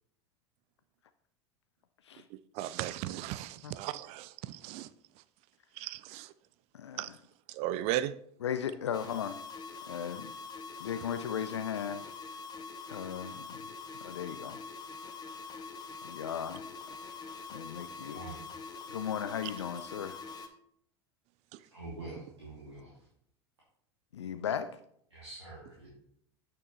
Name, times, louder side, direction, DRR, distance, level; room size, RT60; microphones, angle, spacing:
voice 1, 2.6-4.9 5.8-6.3 7.0-7.1 7.5-8.2, right 13 dB, 50° right, 0.4 m, -36 dB
voice 2, 6.7-7.2 8.4-9.4 9.9-10.3 10.8-12.0 12.9-13.6 14.0-14.6 16.0-16.7 17.5-18.2 18.9-20.2 24.1-24.7, left 8 dB, 80° left, 0.4 m, -36 dB
sound 1, 8.9-20.5, left 4 dB, 30° left, 1.0 m, -44 dB
voice 3, 18.0-18.4 21.7-23.1 25.1-25.9, right 2 dB, 90° right, 2.4 m, -45 dB
8.8 x 6.6 x 3.1 m
figure-of-eight pair, 80°, 14 cm